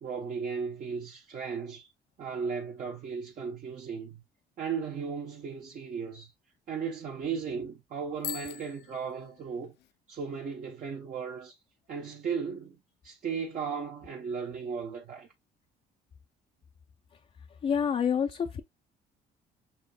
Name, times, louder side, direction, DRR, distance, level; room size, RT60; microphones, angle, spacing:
voice 1, 0.0-1.9 2.2-4.2 4.6-6.3 6.7-9.7 10.1-11.6 11.9-12.8 13.0-15.3, right 6 dB, 50° right, 1.0 m, -36 dB
Bicycle bell, 8.2-9.9, left 10 dB, 80° left, 0.6 m, -42 dB
voice 2, 17.6-18.6, left 7 dB, 35° left, 0.5 m, -27 dB
7.1 x 2.9 x 2.3 m
cardioid pair, 110°, 17 cm